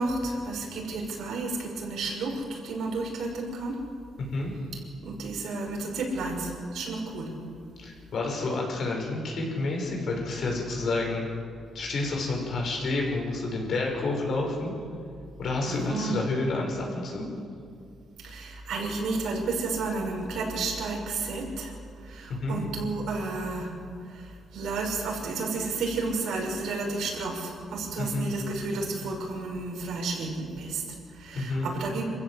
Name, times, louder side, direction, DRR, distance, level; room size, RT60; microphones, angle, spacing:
voice 1, 0.0-3.8 4.7-7.4 15.7-16.2 18.2-23.8 24.0-32.0, right 3 dB, 75° right, 0 dB, 6.0 m, -32 dB
voice 2, 7.8-11.3 11.7-14.7 15.4-17.3 22.3-22.6 28.0-28.3 31.3-31.7, left 2 dB, 60° left, 0 dB, 6.3 m, -29 dB
26.0 x 15.5 x 8.0 m, 2.2 s
cardioid pair, 125°, 0 cm